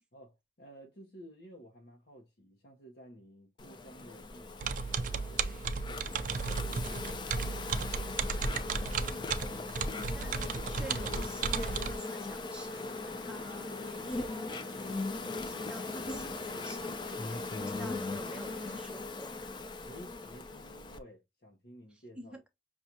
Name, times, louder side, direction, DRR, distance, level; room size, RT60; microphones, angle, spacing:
voice 1, 0.1-7.6 19.8-22.4, equal, 55° left, 0.7 m, -54 dB
Insect, 3.6-21.0, left 3 dB, 25° left, 0.4 m, -39 dB
sound 1, 4.6-12.0, right 5 dB, 45° right, 0.4 m, -34 dB
voice 2, 8.9-9.4 9.9-19.3 21.9-22.4, equal, 5° right, 0.8 m, -48 dB
sound 2, 12.6-18.8, right 3 dB, 65° right, 0.8 m, -53 dB
5.9 x 2.3 x 2.6 m
head